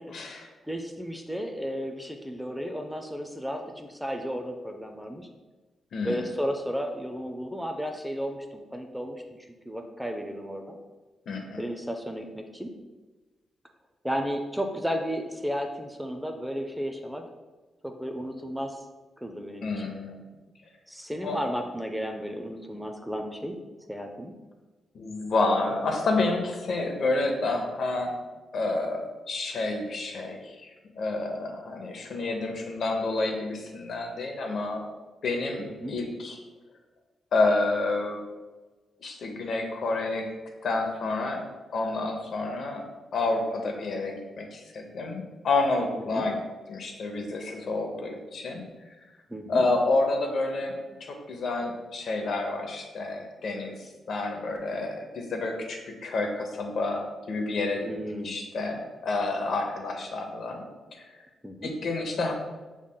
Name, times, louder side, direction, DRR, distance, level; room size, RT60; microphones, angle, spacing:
voice 1, 0.1-0.5 5.9-6.3 11.3-11.6 19.6-20.2 21.2-21.4 24.9-28.1 28.5-29.0 29.3-34.9 35.2-36.4 37.3-38.2 39.0-40.3 40.6-41.4 41.7-42.9 43.1-46.4 46.7-48.6 49.5-57.8 58.2-60.7 60.9-61.1 61.6-62.3, left 2 dB, 65° left, 3 dB, 0.7 m, -29 dB
voice 2, 0.6-5.3 6.0-9.2 9.7-10.8 11.6-12.7 14.0-17.2 17.8-18.8 19.2-19.7 20.9-23.6 23.9-24.4 35.8-36.0 46.1-46.2 49.3-49.6 57.8-58.4 61.4-61.7, equal, ahead, 4 dB, 0.4 m, -33 dB
6.2 x 3.6 x 2.2 m, 1.3 s
cardioid pair, 115°, 0 cm